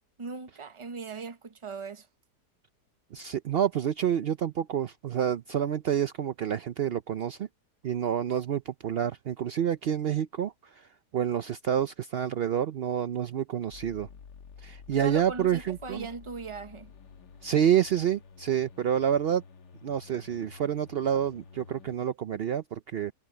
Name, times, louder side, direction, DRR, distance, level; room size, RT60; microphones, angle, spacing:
voice 1, 0.2-2.1 14.9-16.9, right 4 dB, 25° right, 0.8 m, -39 dB
voice 2, 3.1-7.5 7.8-10.9 11.1-14.1 14.6-16.1 17.4-19.4 19.8-23.1, right 9 dB, 70° right, 0.5 m, -28 dB
sound 1, 13.7-22.0, left 6 dB, 85° left, 1.8 m, -51 dB
omnidirectional pair, 1.8 m